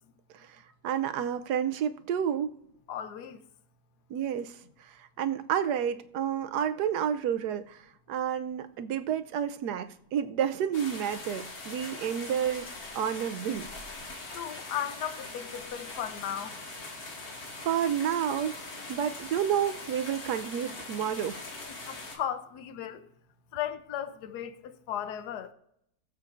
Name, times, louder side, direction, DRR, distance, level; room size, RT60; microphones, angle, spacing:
voice 1, 0.8-2.5 4.1-4.6 5.2-7.8 8.1-12.7 12.9-13.7 17.6-21.4, right 9 dB, 90° right, 1.2 m, -30 dB
voice 2, 2.9-3.4 14.3-16.5 21.7-23.1 23.5-25.5, left 10 dB, 80° left, 1.3 m, -36 dB
sound 1, 10.7-22.2, left 2 dB, 65° left, 2.3 m, -42 dB
21.0 x 7.5 x 2.6 m
omnidirectional pair, 1.7 m